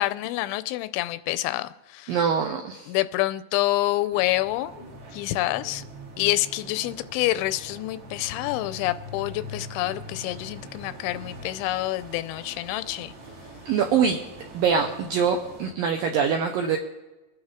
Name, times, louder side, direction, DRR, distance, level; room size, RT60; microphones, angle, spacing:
voice 1, 0.0-2.2 2.9-4.7 5.1-5.8 6.2-13.1, left 16 dB, 90° left, 14 dB, 2.9 m, -27 dB
voice 2, 2.1-2.9 13.7-14.2 14.5-16.8, right 6 dB, 85° right, 3 dB, 2.0 m, -24 dB
sound 1, 4.1-15.7, equal, 40° right, 2.6 m, -43 dB
24.0 x 9.7 x 3.7 m, 1.1 s
omnidirectional pair, 5.2 m